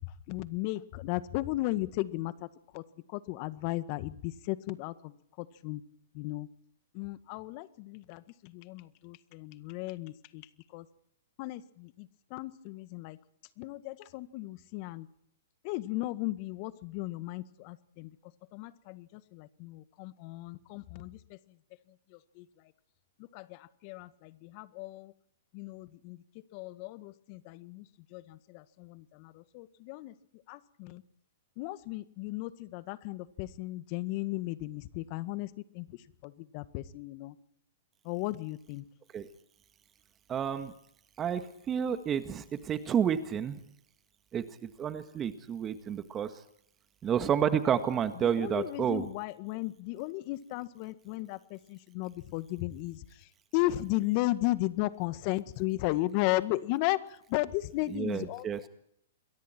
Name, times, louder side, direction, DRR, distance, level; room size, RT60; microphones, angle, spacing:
voice 1, 0.3-2.3 2.7-2.8 3.1-5.1 5.4-5.8 6.1-6.5 6.9-8.2 8.5-10.4 10.7-10.8 11.4-13.2 13.6-15.1 15.6-18.1 18.5-19.1 19.3-21.2 22.4-22.5 23.3-25.1 25.5-26.2 26.5-27.8 28.1-30.1 30.5-31.0 31.6-35.5 35.7-35.9 36.2-37.3 38.0-38.8 48.4-53.0 53.5-57.0 57.3-58.4, left 18 dB, 45° left, 13 dB, 1.7 m, -35 dB
voice 2, 40.3-40.7 41.2-43.6 44.3-46.3 47.0-49.1 57.9-58.7, right 8 dB, 25° right, 9 dB, 1.8 m, -30 dB
28.0 x 22.5 x 4.6 m, 0.69 s
hypercardioid pair, 120°, 0 cm